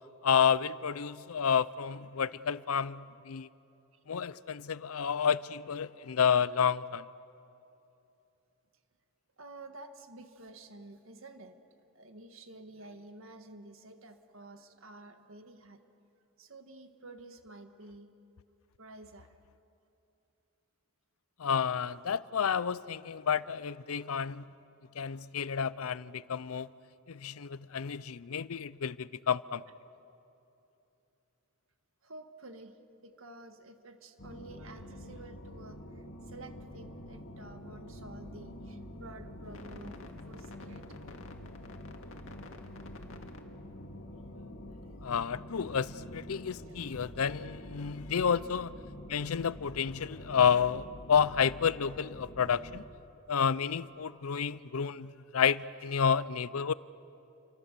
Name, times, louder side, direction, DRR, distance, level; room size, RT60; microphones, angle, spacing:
voice 1, 0.2-3.5 4.1-7.0 21.4-24.4 25.0-26.7 27.1-29.6 45.0-48.7 49.1-52.8 53.3-56.7, left 7 dB, 90° left, 0.6 m, -30 dB
voice 2, 9.4-11.6 11.9-15.8 16.4-18.1 18.8-19.3 25.2-25.3 27.7-27.8 32.0-41.2 44.1-45.1 45.7-45.8 46.7-46.8 47.2-47.5 48.3-48.5, right 2 dB, 70° right, 1.8 m, -51 dB
sound 1, 34.2-52.8, left 1 dB, 70° left, 2.0 m, -47 dB
29.0 x 24.5 x 6.8 m
head